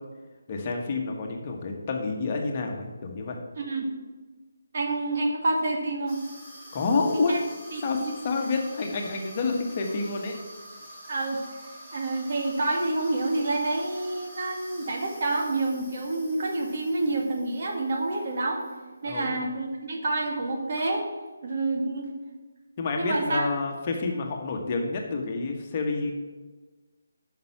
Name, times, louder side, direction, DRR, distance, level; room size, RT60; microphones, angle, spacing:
voice 1, 0.5-3.4 6.7-7.4 7.8-10.4 19.1-19.3 22.8-26.1, left 3 dB, 30° left, 2 dB, 1.4 m, -28 dB
voice 2, 3.6-3.9 4.7-6.2 7.3-7.4 7.7-8.1 11.1-11.4 11.9-18.6 19.0-21.1 21.4-22.1 23.0-23.5, right 2 dB, 45° right, 1 dB, 1.8 m, -28 dB
Water tap faucet / Sink (filling or washing), 6.1-18.8 19.1-19.4 20.1-20.2 20.4-21.3, equal, 15° right, 3.6 m, -47 dB
9.4 x 6.0 x 6.0 m, 1.3 s
figure-of-eight pair, 150°, 0 cm